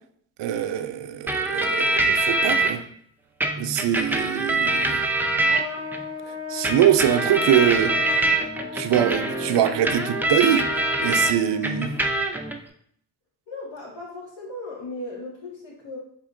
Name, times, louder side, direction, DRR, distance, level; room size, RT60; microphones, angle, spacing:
voice 1, 0.4-2.8 3.6-5.0 6.3-8.3 8.7-10.7 11.0-11.9, right 10 dB, 70° right, 0.5 m, -23 dB
sound 1, 1.3-2.7 3.4-6.0 6.6-11.3 11.6-12.5, right 2 dB, 5° right, 0.4 m, -24 dB
Trumpet, 5.5-12.0, left 5 dB, 10° left, 1.3 m, -36 dB
voice 2, 13.5-16.0, left 2 dB, 75° left, 1.7 m, -37 dB
4.2 x 3.5 x 2.5 m
cardioid pair, 70°, 45 cm